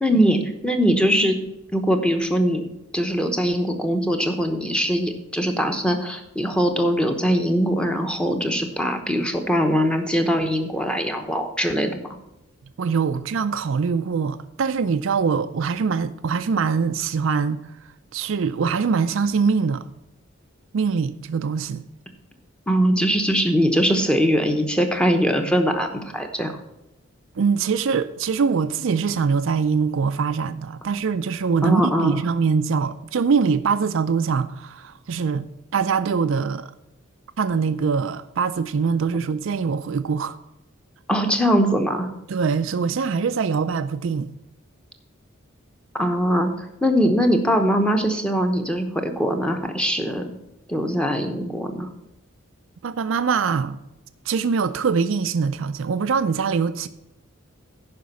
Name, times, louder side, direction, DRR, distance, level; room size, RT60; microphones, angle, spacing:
voice 1, 0.0-1.4 1.7-2.6 2.9-12.1 22.7-26.6 31.6-32.2 41.1-42.1 45.9-50.2 50.7-51.9, equal, 5° left, 0.9 m, -21 dB
voice 2, 12.8-17.7 18.1-19.8 20.7-21.8 27.4-35.5 35.7-36.7 37.4-40.4 42.3-44.4 52.8-53.8 54.3-56.9, right 5 dB, 65° right, 0.4 m, -23 dB
11.0 x 5.1 x 6.9 m
head